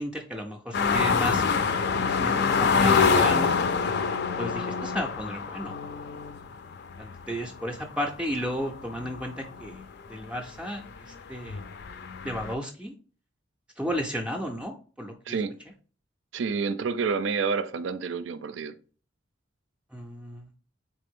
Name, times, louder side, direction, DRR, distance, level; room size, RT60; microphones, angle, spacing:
voice 1, 0.0-1.6 1.9-3.5 4.4-5.8 7.0-9.8 10.1-11.6 12.2-12.9 13.8-15.4 19.9-20.5, equal, 5° right, 0.4 m, -33 dB
sound 1, 0.7-9.8 10.3-10.4 10.8-12.5, left 5 dB, 60° left, 0.4 m, -26 dB
voice 2, 16.3-18.7, right 5 dB, 70° right, 0.4 m, -29 dB
4.2 x 3.3 x 3.6 m
head